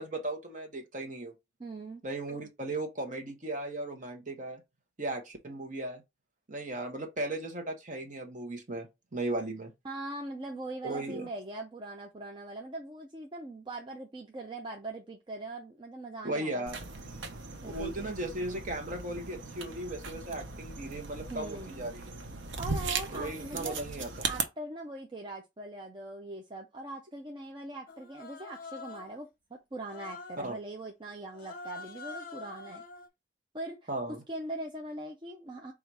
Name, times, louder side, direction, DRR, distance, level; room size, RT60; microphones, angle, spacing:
voice 1, 0.0-1.3 2.0-4.6 5.0-6.0 6.5-9.7 10.8-11.3 16.2-16.8 17.7-22.2 23.1-24.3 30.4-30.5 33.9-34.2, right 2 dB, 40° right, 0.9 m, -36 dB
voice 2, 1.6-2.0 9.8-16.7 17.6-18.2 21.3-21.9 22.6-23.8 24.2-32.8 33.5-35.7, right 2 dB, 25° right, 0.5 m, -41 dB
sound 1, 16.7-24.4, right 4 dB, 90° right, 0.7 m, -38 dB
Human voice, 27.9-29.2 29.8-30.5 31.3-33.1, left 4 dB, 50° left, 0.7 m, -45 dB
4.0 x 2.4 x 4.7 m
head